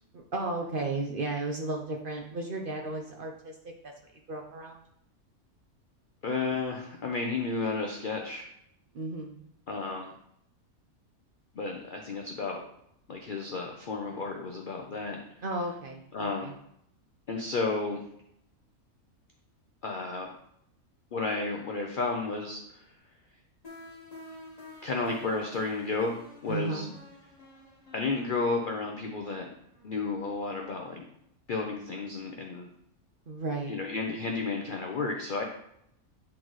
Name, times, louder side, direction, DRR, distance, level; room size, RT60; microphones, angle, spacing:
voice 1, 0.1-3.9 4.3-4.8 8.9-9.4 15.4-16.5 26.5-26.9 33.3-33.8, right 2 dB, 55° right, 1 dB, 0.6 m, -34 dB
voice 2, 6.2-8.5 9.7-10.1 11.6-12.6 13.1-15.2 16.1-16.5 17.3-18.0 19.8-20.3 21.1-22.6 24.8-26.2 26.4-26.9 27.9-29.5 29.8-31.0 31.5-32.7 33.7-35.4, left 3 dB, 55° left, 1 dB, 0.6 m, -32 dB
sound 1, 23.6-30.4, left 1 dB, 30° left, 1.4 m, -50 dB
8.5 x 3.9 x 3.1 m, 0.74 s
omnidirectional pair, 1.5 m